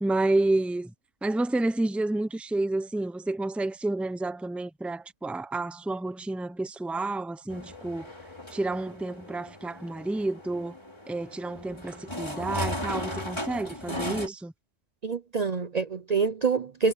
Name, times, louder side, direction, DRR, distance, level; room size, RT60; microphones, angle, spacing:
voice 1, 0.0-0.9 1.2-8.1 8.5-10.7 11.1-14.5, right 2 dB, ahead, 0.8 m, -30 dB
sound 1, 7.5-14.3, left 1 dB, 25° left, 3.1 m, -37 dB
voice 2, 13.9-14.2 15.0-16.9, right 5 dB, 40° right, 0.7 m, -27 dB
omnidirectional pair, 1.2 m